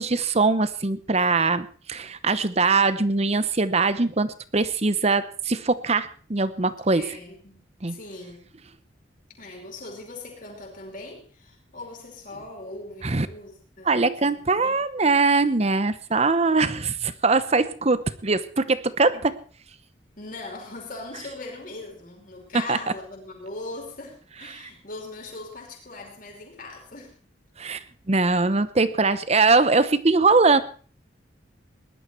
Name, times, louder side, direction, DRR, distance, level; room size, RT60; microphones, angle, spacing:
voice 1, 0.0-7.1 7.8-8.0 13.0-13.3 13.8-19.3 22.7-22.8 24.5-24.6 27.6-27.8 28.1-30.6, right 3 dB, 35° right, 14 dB, 0.9 m, -22 dB
voice 2, 6.9-8.5 9.4-14.9 19.1-19.3 20.2-27.2, left 2 dB, 45° left, 0 dB, 5.2 m, -40 dB
19.5 x 12.0 x 4.5 m, 0.40 s
head